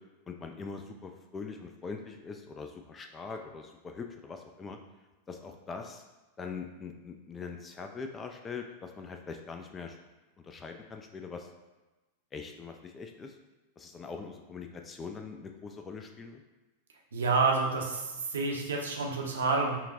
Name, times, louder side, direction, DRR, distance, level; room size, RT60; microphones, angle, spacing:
voice 1, 0.3-4.8 5.3-6.0 6.4-10.0 10.4-11.5 12.3-13.4 13.8-16.4, left 5 dB, 20° left, 4 dB, 0.3 m, -42 dB
voice 2, 17.1-19.8, right 4 dB, 65° right, 0 dB, 0.6 m, -28 dB
5.6 x 2.2 x 2.7 m, 1.1 s
figure-of-eight pair, 90°, 0 cm